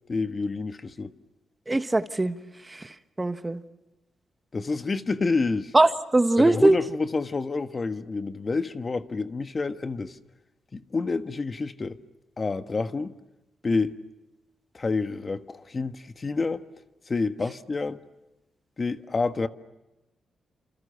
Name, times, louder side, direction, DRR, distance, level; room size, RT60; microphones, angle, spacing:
voice 1, 0.1-1.1 4.5-5.7 6.4-10.2 10.7-12.0 12.4-13.1 13.6-14.0 14.7-16.6 17.1-18.0 18.8-19.5, left 3 dB, 35° left, 1.4 m, -28 dB
voice 2, 1.7-3.6 5.7-6.8, right 2 dB, 20° right, 1.3 m, -22 dB
29.0 x 28.0 x 6.8 m
cardioid pair, 100°, 0 cm